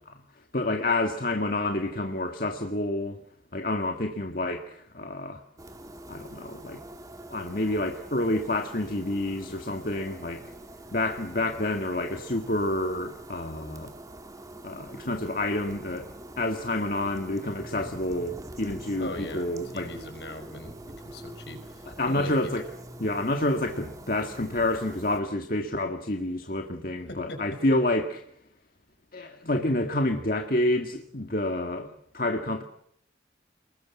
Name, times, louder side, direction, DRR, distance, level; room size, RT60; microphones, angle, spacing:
voice 1, 0.5-3.2 3.5-5.4 6.1-6.8 7.3-10.4 10.9-13.9 14.6-16.1 16.4-19.9 21.9-22.7 23.0-28.2 29.1-32.6, left 1 dB, 50° left, 2.0 m, -28 dB
sound 1, 5.6-25.2, right 1 dB, 20° right, 2.5 m, -44 dB
voice 2, 19.0-19.5 19.7-22.6 27.1-27.4, left 1 dB, 70° left, 5.6 m, -39 dB
29.0 x 21.5 x 7.4 m
head